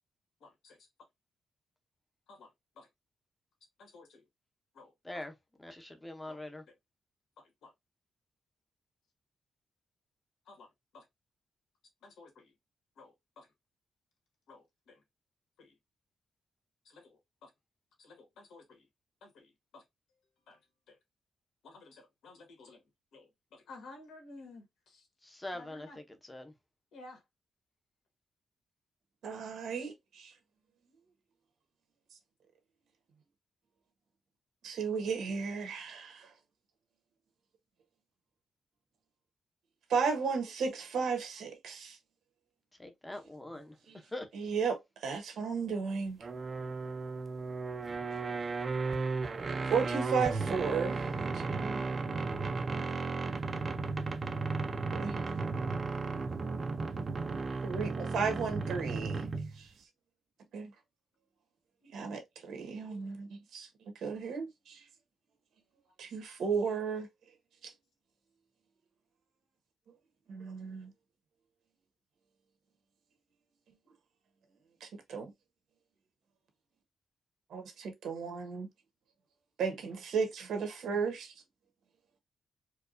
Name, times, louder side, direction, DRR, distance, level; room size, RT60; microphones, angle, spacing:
voice 1, 0.4-0.9 2.3-2.9 3.8-4.3 4.7-5.2 6.3-6.7 7.4-7.7 10.4-11.0 12.0-12.5 13.0-13.5 14.5-15.0 15.6-15.7 16.8-17.5 18.0-18.9 19.2-19.8 20.5-20.6 20.9-21.0 21.6-22.8 23.1-25.1 25.5-26.0 26.9-27.2, left 3 dB, 80° left, 1.6 m, -54 dB
voice 2, 5.6-6.6 25.2-25.9 26.3-26.5 42.8-43.7 44.1-44.3, left 1 dB, 10° left, 0.7 m, -42 dB
voice 3, 29.2-30.3 34.6-36.3 39.9-42.0 43.9-44.0 44.3-46.2 49.7-51.9 54.9-55.2 57.6-59.3 59.6-59.7 60.5-60.7 61.8-63.7 63.9-64.8 66.0-67.1 67.6-67.7 70.3-70.9 74.8-75.3 77.5-78.7 79.6-81.3, right 5 dB, 90° right, 1.2 m, -34 dB
sound 1, 46.2-59.6, right 3 dB, 30° right, 0.5 m, -34 dB
4.5 x 2.3 x 2.5 m
wide cardioid pair, 145°, 0 cm